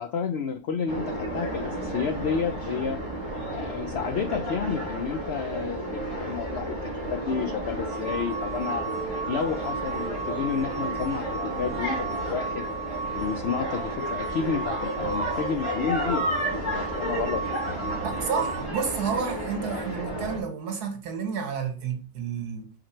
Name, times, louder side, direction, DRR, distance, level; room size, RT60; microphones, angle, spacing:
voice 1, 0.0-3.0 3.4-8.9 9.3-12.7 13.2-18.0, left 6 dB, 75° left, 0.6 m, -31 dB
sound 1, 0.9-20.4, right 1 dB, 55° left, 2.6 m, -32 dB
sound 2, 6.8-12.5, right 5 dB, 70° right, 1.5 m, -42 dB
sound 3, 7.9-18.6, right 4 dB, 45° right, 0.9 m, -35 dB
voice 2, 18.0-22.7, right 6 dB, 90° right, 1.8 m, -30 dB
4.9 x 4.4 x 4.4 m
omnidirectional pair, 1.6 m